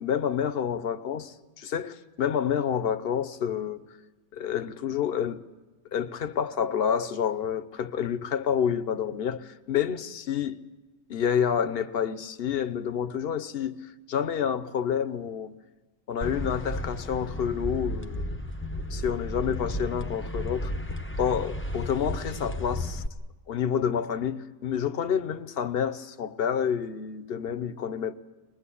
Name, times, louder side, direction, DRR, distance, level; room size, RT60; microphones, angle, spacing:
voice 1, 0.0-3.8 4.3-5.4 5.9-10.6 11.1-15.5 16.1-18.4 18.9-20.7 21.2-23.0 23.5-28.1, left 8 dB, 50° left, 1.0 m, -29 dB
sound 1, 16.2-23.1, left 1 dB, 10° left, 0.8 m, -33 dB
24.5 x 20.5 x 8.5 m
omnidirectional pair, 1.4 m